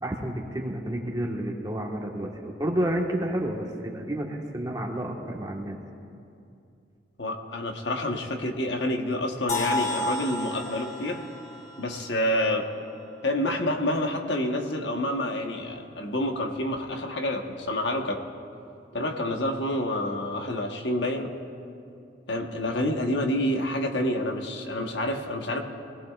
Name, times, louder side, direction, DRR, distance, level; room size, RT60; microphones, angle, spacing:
voice 1, 0.0-5.8, right 1 dB, 20° right, 0 dB, 1.4 m, -30 dB
voice 2, 7.2-11.3 11.8-12.7 13.2-18.2 18.9-21.3 22.3-25.6, left 1 dB, 70° left, 3 dB, 1.2 m, -28 dB
sound 1, 9.5-13.4, left 1 dB, 40° left, 1.3 m, -33 dB
24.0 x 18.0 x 2.5 m, 2.5 s
head